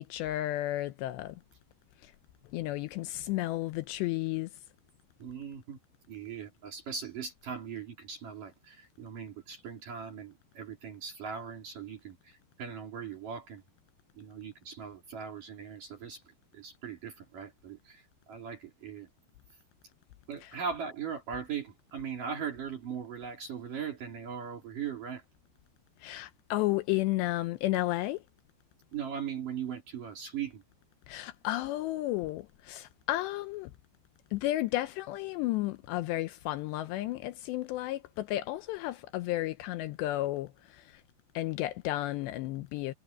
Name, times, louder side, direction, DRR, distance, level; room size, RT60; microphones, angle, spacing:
voice 1, 0.0-1.4 2.0-2.1 2.5-4.5 20.4-20.5 26.0-28.2 31.1-33.7 34.3-41.0 41.4-42.9, left 16 dB, 80° left, 2.7 m, -33 dB
voice 2, 5.2-5.8 6.1-13.6 14.1-16.2 16.5-19.1 20.3-25.2 28.9-30.6, right 7 dB, 50° right, 4.6 m, -39 dB
omnidirectional pair, 5.3 m